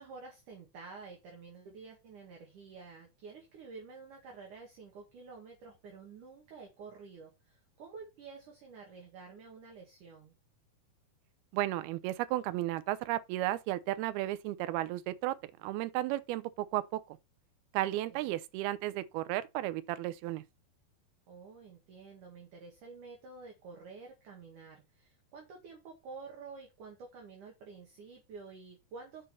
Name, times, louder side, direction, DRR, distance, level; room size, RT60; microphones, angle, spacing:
voice 1, 0.0-10.3 18.1-18.4 21.3-29.2, right 4 dB, 55° right, 3.2 m, -50 dB
voice 2, 11.5-17.2 17.7-20.4, right 15 dB, 75° right, 2.5 m, -34 dB
7.6 x 5.5 x 5.6 m
omnidirectional pair, 4.8 m